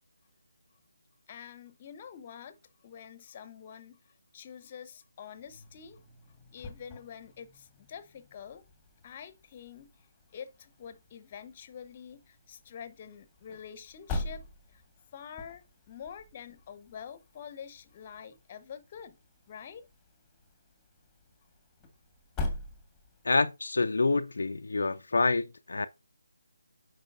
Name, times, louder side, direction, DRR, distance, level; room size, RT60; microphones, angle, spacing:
voice 1, 1.3-2.6 2.8-6.0 6.5-8.6 9.0-10.1 10.3-14.8 15.1-19.2 19.5-19.9, left 8 dB, 30° left, 1.0 m, -47 dB
sound 1, 5.3-23.4, left 2 dB, 10° left, 1.6 m, -44 dB
voice 2, 23.2-25.9, left 3 dB, 70° left, 0.5 m, -27 dB
8.8 x 5.5 x 2.6 m
figure-of-eight pair, 155°, 0 cm